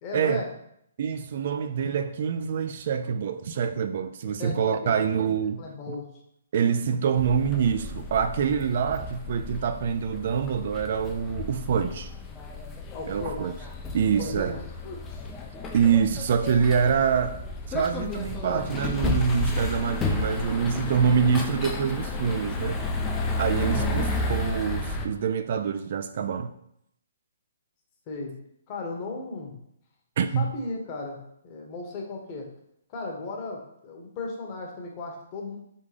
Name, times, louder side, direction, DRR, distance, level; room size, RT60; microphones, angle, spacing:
voice 1, 0.0-0.5 4.4-4.9 5.6-6.1 12.9-13.5 14.2-15.3 21.0-21.3 23.6-24.1 28.1-28.4 28.7-29.6 30.3-32.5 32.9-35.6, left 3 dB, 30° left, 0 dB, 1.0 m, -36 dB
voice 2, 1.0-5.6 6.5-12.1 13.1-13.5 13.9-14.5 15.7-17.4 17.7-22.8 23.4-26.5 30.2-30.5, right 7 dB, 50° right, 9 dB, 0.3 m, -25 dB
sound 1, 7.2-25.1, left 2 dB, 15° left, 0.5 m, -32 dB
3.6 x 3.6 x 3.3 m, 0.74 s
hypercardioid pair, 145°, 0 cm